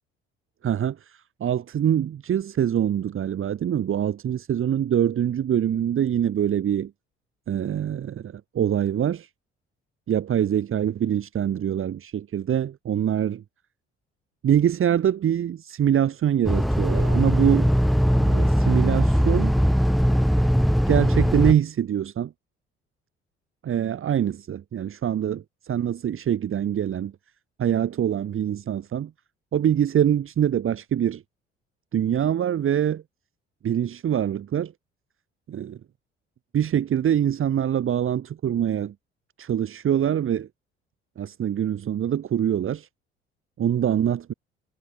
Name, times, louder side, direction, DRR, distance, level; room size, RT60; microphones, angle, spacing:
voice 1, 0.6-6.9 7.5-9.3 10.1-13.4 14.4-17.7 18.1-19.5 20.9-22.3 23.6-27.1 27.6-29.1 29.5-31.2 31.9-33.0 33.6-34.7 35.5-35.8 36.5-38.9 39.4-40.5 41.2-42.9 43.6-44.3, right 9 dB, 40° right, 2.1 m, -24 dB
sound 1, 16.4-21.5, equal, ahead, 1.5 m, -20 dB
figure-of-eight pair, 50°, 33 cm